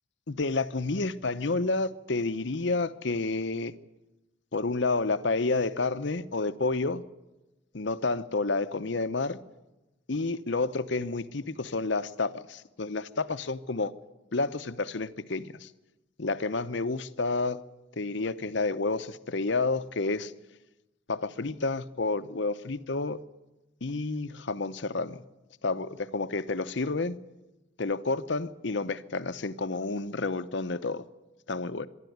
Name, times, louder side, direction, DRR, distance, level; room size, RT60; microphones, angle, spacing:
voice 1, 0.3-3.8 4.5-7.0 7.7-9.4 10.1-13.9 14.3-15.7 16.2-17.6 18.0-20.3 21.1-23.2 23.8-25.2 25.6-27.2 27.8-31.1 31.5-31.9, left 3 dB, 60° left, 12 dB, 0.8 m, -30 dB
25.0 x 12.0 x 9.4 m, 1.0 s
head